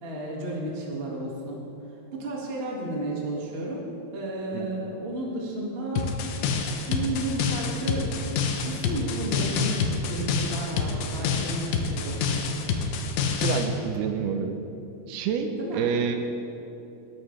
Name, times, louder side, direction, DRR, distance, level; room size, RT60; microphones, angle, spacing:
voice 1, 0.0-1.6 2.1-6.1 6.8-8.2 8.6-12.7 15.6-15.8, right 1 dB, 65° right, -3 dB, 0.6 m, -33 dB
sound 1, 6.0-13.7, left 5 dB, 75° left, 2.6 m, -27 dB
voice 2, 13.4-14.6 15.1-16.2, right 6 dB, 80° right, 6 dB, 2.5 m, -28 dB
20.0 x 11.0 x 3.3 m, 2.9 s
omnidirectional pair, 4.7 m